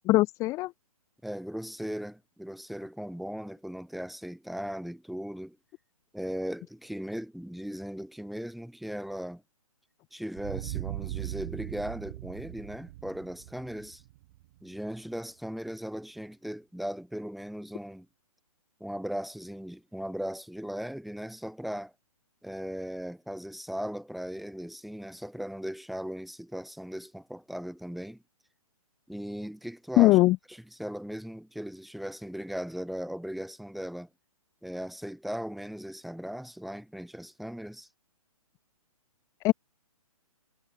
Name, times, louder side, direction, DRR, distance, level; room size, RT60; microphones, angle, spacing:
voice 1, 0.1-0.7 30.0-30.4 39.4-39.5, left 18 dB, 15° left, 0.7 m, -20 dB
voice 2, 1.2-5.6 6.1-9.4 10.1-14.0 14.6-18.1 18.8-21.9 22.4-28.2 29.1-30.2 30.8-34.1 34.6-37.9, equal, ahead, 2.7 m, -38 dB
sound 1, 10.4-15.0, right 17 dB, 35° right, 1.4 m, -39 dB
figure-of-eight pair, 135°, 19 cm